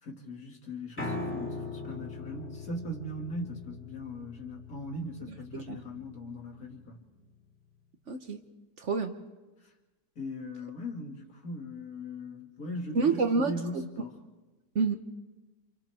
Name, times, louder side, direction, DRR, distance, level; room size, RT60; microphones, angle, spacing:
voice 1, 0.0-7.0 9.6-9.7 10.2-14.2, left 1 dB, 60° left, 1 dB, 2.7 m, -40 dB
Piano, 1.0-7.1, left 3 dB, 10° left, 2.0 m, -41 dB
voice 2, 8.1-8.4 8.8-9.2 12.9-13.8 14.7-15.0, right 4 dB, 50° right, 6 dB, 1.2 m, -28 dB
28.5 x 27.0 x 3.5 m, 1.2 s
omnidirectional pair, 1.7 m